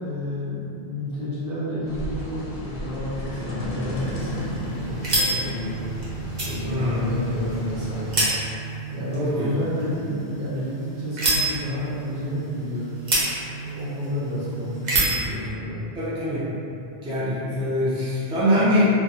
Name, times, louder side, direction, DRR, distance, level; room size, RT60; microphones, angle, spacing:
voice 1, 0.0-5.9 6.4-8.3 8.9-12.9 13.6-15.8, left 1 dB, 75° right, -10 dB, 1.1 m, -31 dB
sound 1, 1.9-8.2, left 1 dB, 70° left, 0.7 m, -34 dB
sound 2, 3.9-15.3, right 3 dB, 50° right, 0.7 m, -29 dB
voice 2, 6.7-7.0 9.1-9.5 16.0-16.5 17.0-18.9, equal, 10° right, -11 dB, 0.4 m, -23 dB
2.5 x 2.1 x 2.9 m, 2.8 s
omnidirectional pair, 1.0 m